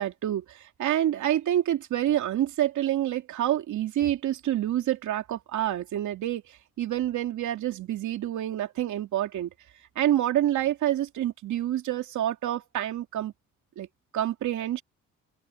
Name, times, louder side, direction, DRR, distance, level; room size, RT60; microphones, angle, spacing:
voice 1, 0.0-6.4 6.8-9.5 10.0-13.3 13.8-13.9 14.1-14.8, right 12 dB, 75° right, 2.6 m, -27 dB
open air
cardioid pair, 90°, 30 cm